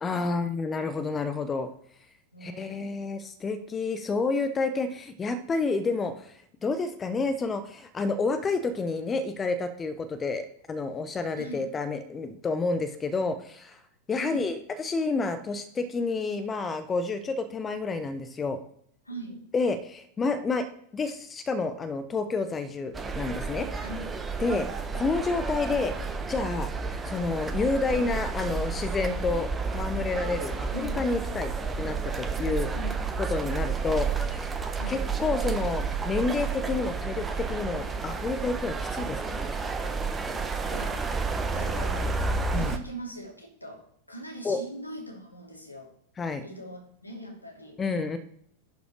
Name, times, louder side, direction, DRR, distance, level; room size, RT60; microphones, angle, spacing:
voice 1, 0.0-1.7 2.4-13.8 14.1-18.6 19.5-20.7 20.9-23.7 24.4-24.7 24.9-25.9 26.3-26.7 27.0-31.5 31.8-32.7 33.2-34.5 34.9-39.5 42.5-42.7 44.4-44.6 46.2-46.4 47.8-48.2, left 3 dB, 20° left, 12 dB, 1.0 m, -29 dB
voice 2, 2.3-3.0 11.3-11.7 14.2-14.5 19.0-19.4 23.8-24.1 24.4-24.7 30.7-31.0 32.7-33.0 34.8-35.1 40.7-41.0 41.5-42.2 42.5-45.9 46.4-47.8, right 1 dB, 85° left, 0 dB, 2.7 m, -41 dB
sound 1, 22.9-42.8, right 4 dB, 15° right, 1.0 m, -31 dB
11.0 x 5.3 x 4.9 m, 0.66 s
figure-of-eight pair, 90°, 0 cm